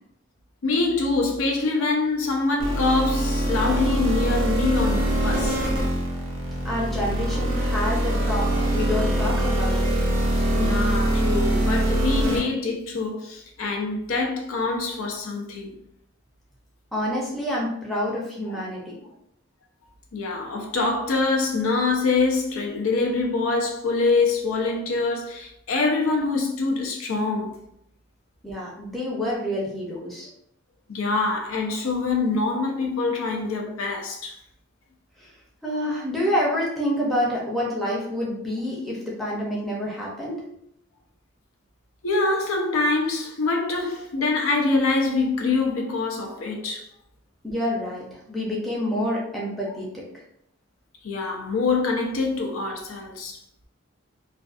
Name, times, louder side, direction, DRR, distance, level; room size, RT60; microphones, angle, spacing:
voice 1, 0.6-5.6 10.5-15.8 20.1-27.6 30.9-34.4 42.0-46.9 49.7-49.8 51.0-53.4, left 3 dB, 80° left, 0.5 m, -25 dB
sound 1, 2.6-12.4, right 1 dB, 90° right, 0.7 m, -23 dB
voice 2, 6.6-9.9 16.9-19.0 28.4-30.3 35.2-35.3 35.6-40.4 47.4-50.2, equal, ahead, 0.5 m, -28 dB
2.5 x 2.2 x 2.4 m
head